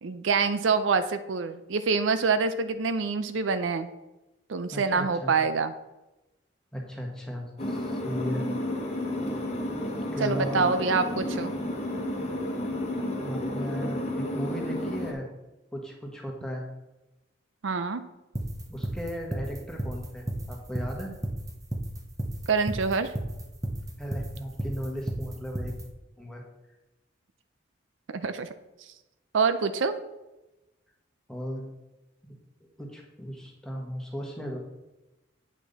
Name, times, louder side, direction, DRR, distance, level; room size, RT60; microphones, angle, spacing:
voice 1, 0.0-3.9 4.5-5.7 10.2-11.5 17.6-18.0 22.5-23.1 28.1-28.5 29.3-30.0, right 4 dB, 80° right, 11 dB, 0.5 m, -26 dB
voice 2, 4.7-5.3 6.7-8.4 10.1-10.7 13.2-15.3 15.7-16.7 18.7-21.1 24.0-25.7 26.2-26.4 31.3-31.7 32.8-34.6, equal, 5° left, -1 dB, 1.3 m, -36 dB
sound 1, 7.6-15.1, left 1 dB, 35° left, 1.1 m, -31 dB
sound 2, 18.3-25.8, right 1 dB, 15° right, 0.7 m, -32 dB
8.4 x 5.9 x 4.0 m, 1.0 s
head